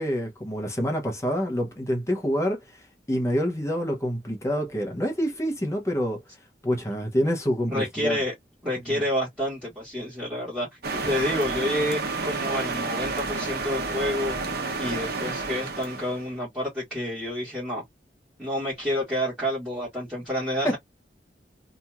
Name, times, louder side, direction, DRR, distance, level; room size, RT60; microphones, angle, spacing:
voice 1, 0.0-6.2 6.6-8.2 8.9-9.0 10.9-11.0 20.6-20.8, equal, 15° left, 0.9 m, -27 dB
voice 2, 7.7-8.3 8.6-10.8 11.1-14.4 14.8-17.8 18.4-20.8, equal, 5° right, 1.4 m, -29 dB
sound 1, 10.8-16.3, right 3 dB, 60° right, 0.9 m, -30 dB
2.9 x 2.6 x 2.2 m
head